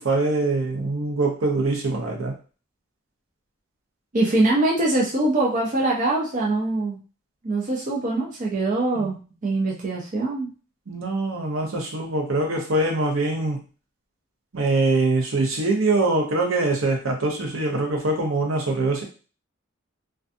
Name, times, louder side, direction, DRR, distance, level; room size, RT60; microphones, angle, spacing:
voice 1, 0.0-2.4 8.9-9.1 10.9-13.6 14.5-19.0, right 2 dB, 75° right, 1 dB, 0.7 m, -23 dB
voice 2, 4.1-7.0 7.4-9.1 9.4-10.5, right 2 dB, 40° right, -2 dB, 0.5 m, -23 dB
2.4 x 2.2 x 2.6 m, 0.35 s
head